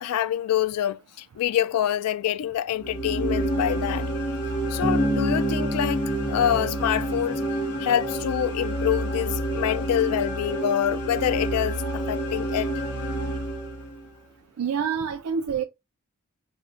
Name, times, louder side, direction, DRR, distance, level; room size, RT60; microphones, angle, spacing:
voice 1, 0.0-4.1 4.7-7.5 7.8-12.7, left 10 dB, 90° left, 0.3 m, -26 dB
sound 1, 2.8-14.1, right 1 dB, 75° left, 0.8 m, -29 dB
Bass guitar, 4.8-8.3, equal, 5° right, 0.7 m, -31 dB
voice 2, 14.6-15.6, right 7 dB, 75° right, 0.4 m, -27 dB
5.5 x 2.1 x 2.5 m
head